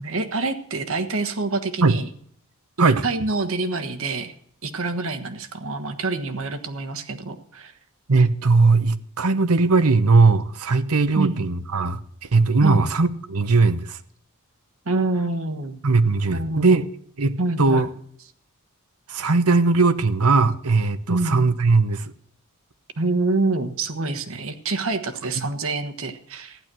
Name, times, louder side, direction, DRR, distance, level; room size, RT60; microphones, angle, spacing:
voice 1, 0.0-2.1 3.0-4.3 4.6-7.7 11.1-11.4 12.6-12.8 14.8-15.8 16.3-16.8 17.4-17.9 21.1-21.4 23.0-26.6, right 3 dB, 65° right, 8 dB, 1.4 m, -26 dB
voice 2, 8.1-14.0 15.8-16.8 17.2-17.9 19.1-22.1 25.4-25.5, right 3 dB, 80° right, 12 dB, 1.0 m, -19 dB
15.0 x 10.5 x 6.2 m, 0.62 s
head